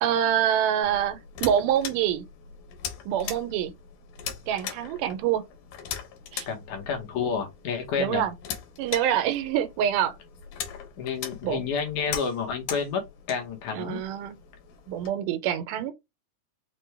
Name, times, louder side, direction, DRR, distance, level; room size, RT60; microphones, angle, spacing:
voice 1, 0.0-2.3 3.1-3.7 4.5-5.5 6.3-6.5 8.0-8.3 8.8-10.2 11.4-11.6 13.7-14.4 14.9-15.9, right 10 dB, 90° right, 2.2 m, -26 dB
sound 1, 0.8-15.1, left 7 dB, 90° left, 2.6 m, -40 dB
voice 2, 6.5-8.3 11.0-13.0 13.3-14.0, left 6 dB, 70° left, 2.4 m, -30 dB
5.9 x 2.2 x 3.2 m
omnidirectional pair, 3.7 m